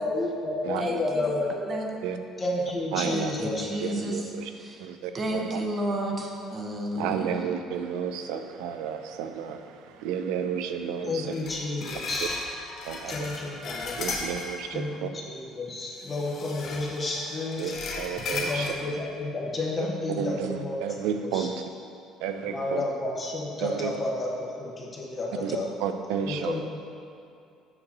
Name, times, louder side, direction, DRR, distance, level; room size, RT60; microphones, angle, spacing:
voice 1, 0.0-1.7 2.4-3.6 11.0-12.4 13.1-14.0 14.7-17.7 18.3-21.5 22.4-25.6 26.2-26.6, left 2 dB, 25° left, -3 dB, 1.0 m, -31 dB
voice 2, 0.8-1.2 1.7-1.9 3.0-4.8 5.1-7.4, right 1 dB, 30° right, 1 dB, 0.9 m, -32 dB
voice 3, 2.9-3.3 3.8-4.5 4.8-5.6 7.0-11.3 12.9-13.3 14.0-15.1 17.6-17.7 18.0-18.7 19.8-19.9 20.2-21.6 22.2-22.8 23.6-23.9 25.4-26.6, right 8 dB, 85° right, 7 dB, 0.4 m, -32 dB
sound 1, 11.3-14.8 16.0-18.7, left 3 dB, 50° left, 0.9 m, -36 dB
7.9 x 2.9 x 5.9 m, 2.5 s
cardioid pair, 115°, 0 cm